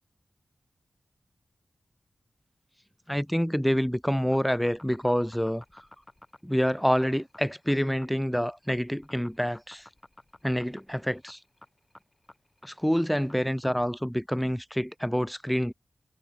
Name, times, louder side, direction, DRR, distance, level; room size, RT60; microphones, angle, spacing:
voice 1, 3.1-5.6 6.4-9.9 10.4-11.4 12.6-15.7, equal, ahead, 1.0 m, -27 dB
sound 1, 4.3-13.8, left 1 dB, 20° left, 7.0 m, -52 dB
wide cardioid pair, 105°, 0 cm